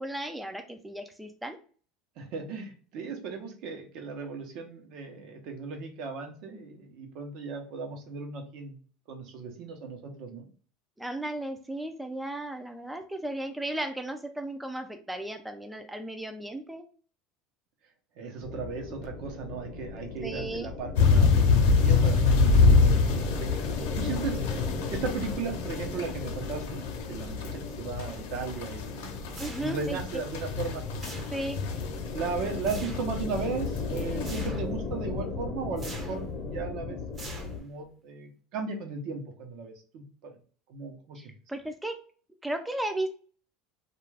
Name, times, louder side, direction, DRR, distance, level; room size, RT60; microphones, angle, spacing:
voice 1, 0.0-1.6 11.0-16.8 20.2-20.7 24.7-24.8 29.4-30.2 31.3-31.6 41.2-42.0 42.4-43.1, right 1 dB, 5° right, 6 dB, 0.3 m, -35 dB
voice 2, 2.2-8.8 9.1-10.5 18.2-23.5 23.9-24.4 24.9-26.8 27.1-30.8 32.1-37.0 37.2-40.3 40.7-41.3, right 5 dB, 60° right, 4 dB, 0.7 m, -36 dB
sound 1, 18.4-37.6, left 4 dB, 45° left, 0.7 m, -36 dB
sound 2, 20.9-32.5 32.9-33.2 33.8-34.2, left 4 dB, 85° left, 0.7 m, -25 dB
sound 3, 29.3-30.0 31.0-31.7 32.6-33.1 34.3-34.8 35.8-36.3 37.2-37.8, right 2 dB, 25° right, 0.7 m, -44 dB
2.3 x 2.3 x 3.2 m, 0.41 s
supercardioid pair, 125°, 0 cm